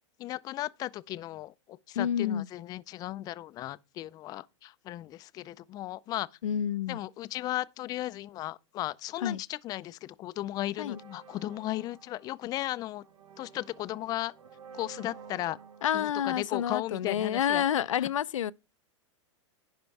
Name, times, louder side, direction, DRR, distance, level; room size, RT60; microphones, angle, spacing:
voice 1, 0.2-6.3 6.9-13.0 13.4-14.3 14.7-15.6 15.9-17.6 18.0-18.1, left 15 dB, 25° left, 0.3 m, -36 dB
voice 2, 2.0-2.5 6.4-7.0 9.2-9.4 10.8-11.0 15.8-18.5, left 9 dB, 90° left, 0.5 m, -29 dB
sound 1, 10.8-17.5, right 6 dB, 75° right, 1.3 m, -52 dB
10.5 x 4.4 x 4.7 m
hypercardioid pair, 125°, 16 cm